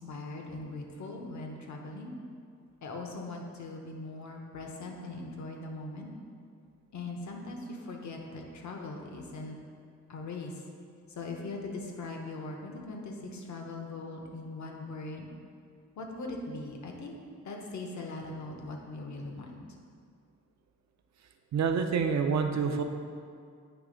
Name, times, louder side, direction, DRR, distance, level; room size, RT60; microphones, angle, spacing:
voice 1, 0.0-2.1 2.8-6.1 6.9-9.6 10.1-10.6 11.1-15.3 16.0-17.2 17.4-19.6, left 2 dB, 70° left, 2 dB, 0.9 m, -40 dB
voice 2, 21.5-22.8, right 6 dB, 65° right, 5 dB, 0.6 m, -27 dB
8.2 x 3.3 x 5.0 m, 2.2 s
wide cardioid pair, 140°, 30 cm